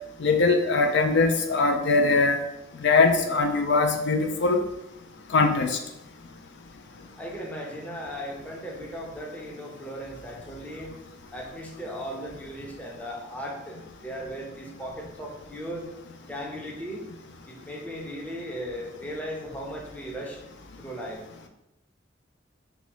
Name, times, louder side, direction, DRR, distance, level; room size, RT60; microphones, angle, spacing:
voice 1, 0.2-2.4 2.8-4.6 5.3-5.8, left 3 dB, 65° left, 4 dB, 0.5 m, -21 dB
voice 2, 7.2-10.9 11.3-15.9 16.3-17.1 17.5-20.4 20.8-21.2, equal, 10° left, -2 dB, 0.7 m, -37 dB
4.5 x 2.3 x 4.3 m, 0.89 s
head